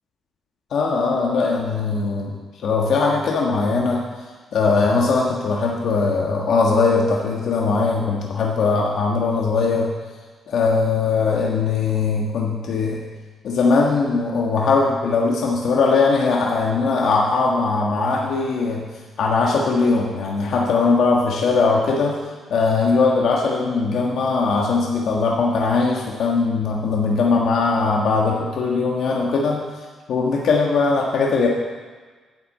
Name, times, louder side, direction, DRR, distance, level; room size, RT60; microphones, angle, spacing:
voice 1, 0.7-2.3 2.6-4.0 4.5-9.9 10.5-13.0 13.4-18.8 19.2-22.2 22.5-29.6 30.1-31.5, left 4 dB, 65° left, -2 dB, 1.5 m, -20 dB
9.9 x 8.0 x 7.6 m, 1.4 s
cardioid pair, 150°, 0 cm